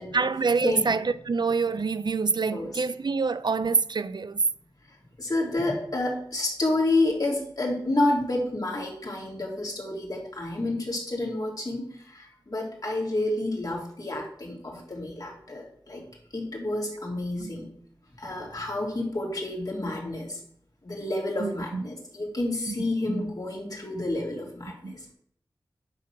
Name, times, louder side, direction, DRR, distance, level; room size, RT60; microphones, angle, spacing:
voice 1, 0.0-4.4 17.4-17.5 21.4-21.9 22.7-22.8 23.1-23.2 24.8-24.9, right 4 dB, 60° right, 0.5 m, -26 dB
voice 2, 0.6-0.9 2.5-2.8 5.2-16.0 16.3-17.7 18.2-20.4 20.8-25.1, left 2 dB, 45° left, 3.4 m, -29 dB
9.6 x 4.3 x 6.1 m
cardioid pair, 45°, 8 cm